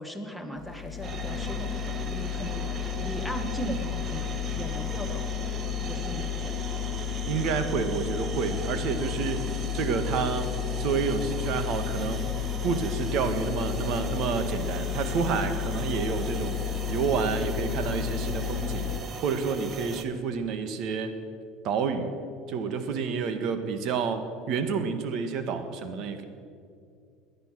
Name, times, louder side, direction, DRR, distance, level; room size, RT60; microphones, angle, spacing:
voice 1, 0.0-5.2 5.9-6.6, right 1 dB, ahead, 6 dB, 1.7 m, -38 dB
sound 1, 0.6-19.0, left 10 dB, 45° left, 3.1 m, -32 dB
sound 2, 1.0-20.0, right 5 dB, 35° right, 1.2 m, -39 dB
voice 2, 7.3-10.5 10.8-12.3 12.6-16.6 16.9-18.9 19.2-21.1 21.6-22.1 22.5-26.2, right 5 dB, 60° right, 8 dB, 1.7 m, -29 dB
19.5 x 11.0 x 6.3 m, 2.4 s
supercardioid pair, 110°, 0 cm